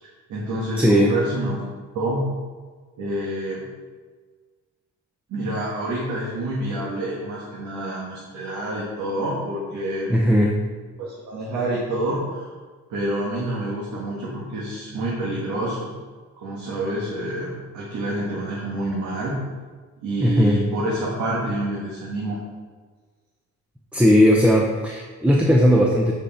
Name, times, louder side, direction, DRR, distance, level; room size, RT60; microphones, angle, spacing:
voice 1, 0.0-1.6 1.9-2.2 3.0-3.6 5.3-10.1 11.0-12.5 12.9-15.9 16.4-19.3 20.0-22.4, right 1 dB, 80° right, -5 dB, 1.8 m, -28 dB
voice 2, 0.8-1.2 10.1-10.6 20.2-20.6 23.9-26.1, equal, 5° right, 0 dB, 0.8 m, -17 dB
7.9 x 5.1 x 4.4 m, 1.4 s
cardioid pair, 90°, 30 cm